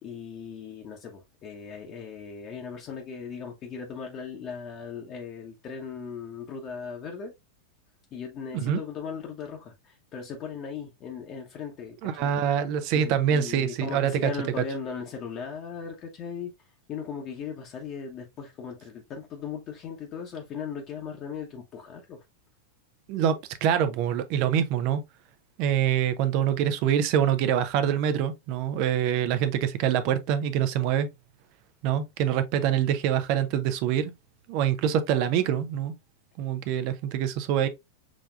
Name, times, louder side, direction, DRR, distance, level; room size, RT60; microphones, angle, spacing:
voice 1, 0.0-7.3 8.1-12.3 12.9-22.2, left 6 dB, 35° left, 1.0 m, -38 dB
voice 2, 12.0-14.1 23.1-25.0 25.6-31.1 31.8-34.1 34.5-35.9 36.4-37.7, right 9 dB, 45° right, 0.7 m, -25 dB
6.2 x 3.4 x 2.4 m
figure-of-eight pair, 90°, 0 cm